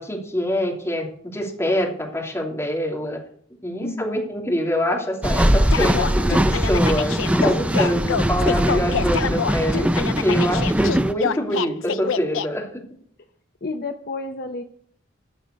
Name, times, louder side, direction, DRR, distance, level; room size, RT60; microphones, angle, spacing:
voice 1, 0.0-3.2 3.6-12.6, equal, 15° left, -2 dB, 3.0 m, -25 dB
voice 2, 3.8-4.2 13.6-14.6, left 3 dB, 50° left, 5 dB, 0.8 m, -30 dB
sound 1, 5.2-11.1, right 1 dB, 5° right, 0.4 m, -21 dB
sound 2, 5.7-12.5, left 7 dB, 80° left, 0.5 m, -26 dB
14.5 x 5.5 x 8.2 m, 0.62 s
head